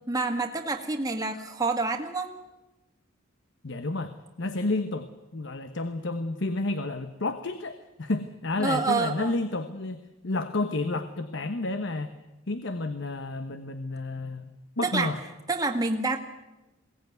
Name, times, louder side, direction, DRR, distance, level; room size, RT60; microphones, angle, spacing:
voice 1, 0.1-2.3 8.6-9.4 14.8-15.1 15.5-16.2, right 3 dB, 15° right, 4 dB, 1.8 m, -27 dB
voice 2, 3.6-12.1 12.5-15.2, left 2 dB, 60° left, 10 dB, 1.1 m, -31 dB
22.0 x 17.5 x 9.3 m, 1.1 s
head